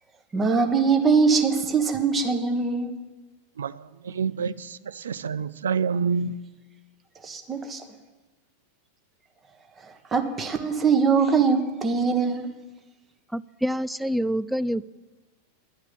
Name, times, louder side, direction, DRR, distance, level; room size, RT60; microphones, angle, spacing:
voice 1, 0.3-2.9 7.2-7.8 10.1-12.5, right 5 dB, 20° right, 1.4 m, -22 dB
voice 2, 3.6-6.4, right 5 dB, 65° right, 0.4 m, -28 dB
voice 3, 13.3-14.9, equal, 5° right, 0.3 m, -27 dB
11.5 x 8.0 x 9.1 m
figure-of-eight pair, 90°, 0 cm